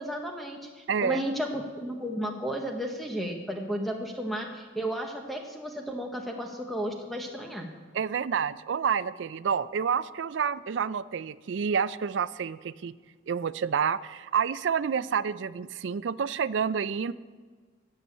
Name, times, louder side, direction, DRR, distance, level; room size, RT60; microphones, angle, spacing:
voice 1, 0.0-7.7, equal, ahead, 2 dB, 0.9 m, -33 dB
voice 2, 0.9-1.2 7.9-12.9 13.3-17.1, right 6 dB, 75° right, 16 dB, 0.4 m, -29 dB
13.0 x 6.9 x 8.6 m, 1.5 s
head